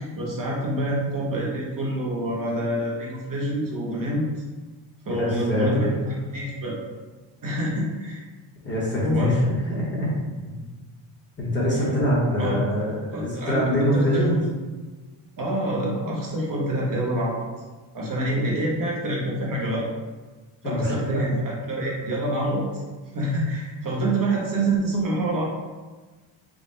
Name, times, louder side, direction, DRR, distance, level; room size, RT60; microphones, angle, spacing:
voice 1, 0.0-4.3 5.1-6.8 7.4-8.2 9.0-9.4 11.7-11.8 12.4-12.6 13.1-14.2 15.4-17.4 17.9-19.9 20.6-22.8 23.1-25.4, right 1 dB, 45° right, -3 dB, 0.7 m, -26 dB
voice 2, 5.1-6.0 8.6-10.1 10.4-10.6 11.4-14.4 20.6-21.2, equal, 25° left, -6 dB, 0.8 m, -24 dB
3.5 x 2.0 x 3.8 m, 1.3 s
wide cardioid pair, 170°, 49 cm